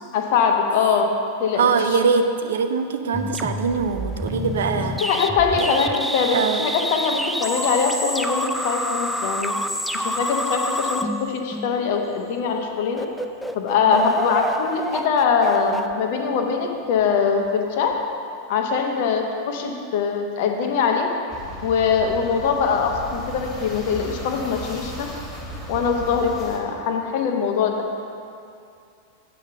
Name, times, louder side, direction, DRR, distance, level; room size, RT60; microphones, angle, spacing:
voice 1, 0.1-1.1 1.4-2.0 5.0-9.5 9.9-13.1 13.5-18.0 18.5-21.1 21.6-25.1 25.7-27.8, left 6 dB, 50° left, 3 dB, 1.0 m, -22 dB
voice 2, 1.6-5.0 5.6-5.7 6.3-6.7 13.9-14.1, right 5 dB, 60° right, 7 dB, 0.6 m, -22 dB
sound 1, 3.1-12.0 12.5-12.7 13.0-16.9, equal, ahead, 0.4 m, -28 dB
sound 2, 21.3-26.6, equal, 20° left, 1.8 m, -35 dB
7.7 x 5.7 x 6.6 m, 2.4 s
figure-of-eight pair, 90°, 0 cm